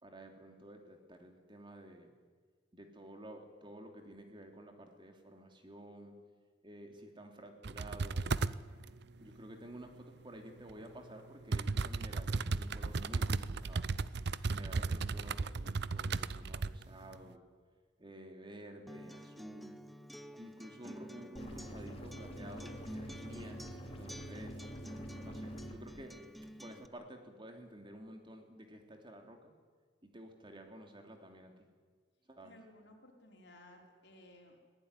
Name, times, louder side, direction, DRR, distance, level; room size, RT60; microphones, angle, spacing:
voice 1, 0.0-2.1 2.7-6.1 6.6-8.3 9.2-13.9 14.5-17.4 18.0-19.8 20.3-24.6 25.2-26.2 26.6-29.5 30.0-31.7 32.3-32.5, right 1 dB, 25° right, 4 dB, 3.1 m, -51 dB
sound 1, 7.6-8.6 10.7-10.8 11.5-16.8 17.1-17.2, right 4 dB, 65° right, 0.7 m, -35 dB
Acoustic guitar, 18.9-26.9, equal, ahead, 0.9 m, -49 dB
sound 2, 21.4-25.8, equal, 35° left, 3.4 m, -47 dB
voice 2, 32.4-34.8, left 1 dB, 65° left, 2 dB, 4.9 m, -58 dB
23.0 x 18.0 x 9.8 m, 1.5 s
head